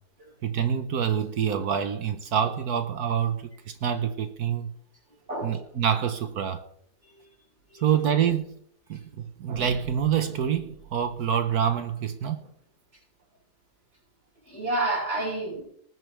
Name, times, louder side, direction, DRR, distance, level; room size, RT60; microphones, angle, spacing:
voice 1, 0.4-4.7 5.4-6.6 7.8-8.5 8.9-9.0 9.4-12.4, right 8 dB, 70° right, 8 dB, 1.4 m, -26 dB
voice 2, 5.3-5.6 7.7-7.9 14.5-15.6, right 2 dB, 45° right, -3 dB, 6.1 m, -29 dB
20.0 x 9.3 x 3.4 m, 0.66 s
omnidirectional pair, 1.7 m